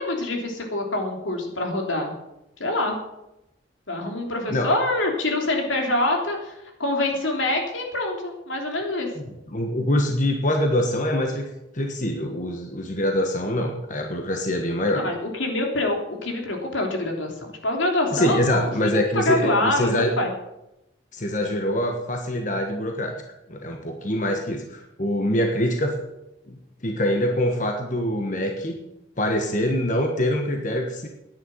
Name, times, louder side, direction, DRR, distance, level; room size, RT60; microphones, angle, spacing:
voice 1, 0.0-2.1 2.6-3.0 3.9-9.1 14.9-19.9 20.2-20.3, left 2 dB, 85° left, 2 dB, 3.2 m, -25 dB
voice 2, 9.2-11.5 11.7-15.1 18.1-20.1 21.1-23.2 23.5-26.0 26.5-28.8 29.2-31.1, left 1 dB, 40° left, 3 dB, 1.3 m, -24 dB
10.5 x 9.9 x 7.7 m, 0.89 s
head